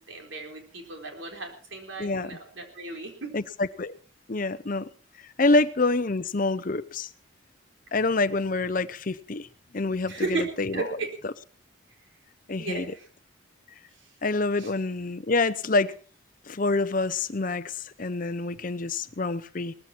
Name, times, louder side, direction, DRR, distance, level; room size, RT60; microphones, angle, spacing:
voice 1, 0.1-3.3 10.1-10.5 10.7-11.1 12.6-13.0 14.6-14.7, right 2 dB, 70° right, 3 dB, 4.1 m, -34 dB
voice 2, 2.0-2.4 3.3-3.9 4.3-4.9 5.4-7.1 7.9-9.5 9.7-10.3 10.6-11.3 12.5-12.9 14.2-15.9 16.5-19.7, left 3 dB, 40° left, 14 dB, 0.6 m, -27 dB
19.0 x 14.5 x 4.4 m, 0.41 s
head